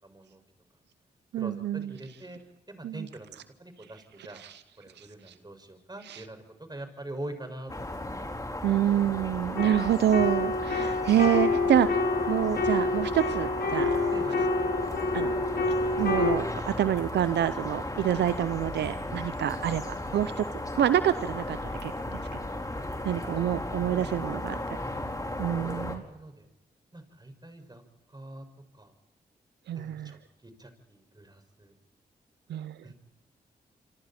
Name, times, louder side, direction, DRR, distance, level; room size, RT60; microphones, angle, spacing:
voice 1, 0.0-0.4 1.3-2.4 2.7-3.3 3.6-4.4 4.8-6.4 6.7-8.1 14.1-14.4 24.7-25.0 25.5-26.5 26.9-27.8 28.1-28.5 28.8-28.9 29.7-31.7 32.8-32.9, right 1 dB, 25° right, 7 dB, 5.9 m, -44 dB
voice 2, 1.3-1.9 2.8-3.1 4.3-4.6 5.0-5.3 6.1-6.2 8.6-12.0 12.3-14.0 15.1-15.4 16.0-20.5 20.8-21.6 21.8-22.2 23.0-24.6 25.4-26.0 29.7-30.2 32.5-32.9, right 11 dB, 80° right, 13 dB, 0.7 m, -27 dB
sound 1, 7.7-26.0, left 1 dB, 20° left, 4.4 m, -36 dB
sound 2, 9.6-16.4, left 3 dB, 70° left, 5.6 m, -28 dB
27.0 x 26.0 x 4.4 m, 0.98 s
supercardioid pair, 45°, 17 cm